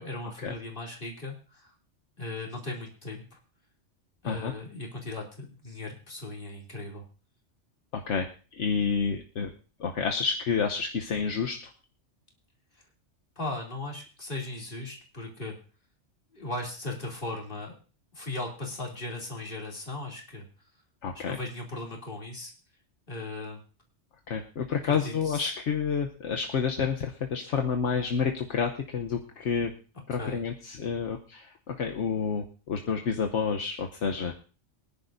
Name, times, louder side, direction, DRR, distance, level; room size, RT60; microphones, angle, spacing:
voice 1, 0.0-1.7 2.2-3.4 4.2-7.0 13.4-15.6 16.3-17.7 18.1-20.5 21.1-22.5 23.1-23.6 24.7-25.5 30.1-30.4, left 2 dB, 45° left, -1 dB, 3.0 m, -37 dB
voice 2, 7.9-9.5 9.8-11.6 21.0-21.4 24.3-29.7 30.1-34.4, left 6 dB, 75° left, 3 dB, 1.2 m, -29 dB
24.0 x 10.5 x 2.6 m, 0.36 s
omnidirectional pair, 1.2 m